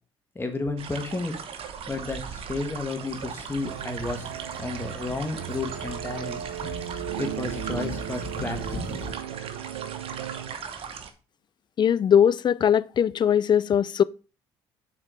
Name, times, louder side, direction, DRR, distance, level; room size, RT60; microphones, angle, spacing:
voice 1, 0.3-1.4 1.9-4.3 4.6-6.4 7.2-8.8, left 3 dB, 20° left, 1.5 m, -32 dB
sound 1, 0.8-11.1, right 7 dB, 55° right, 1.0 m, -39 dB
sound 2, 3.1-9.1, left 3 dB, 85° left, 2.6 m, -40 dB
sound 3, 3.7-10.6, right 12 dB, 85° right, 0.4 m, -36 dB
voice 2, 11.8-14.0, left 8 dB, 40° left, 0.4 m, -20 dB
6.1 x 4.3 x 4.9 m
hypercardioid pair, 55°, 11 cm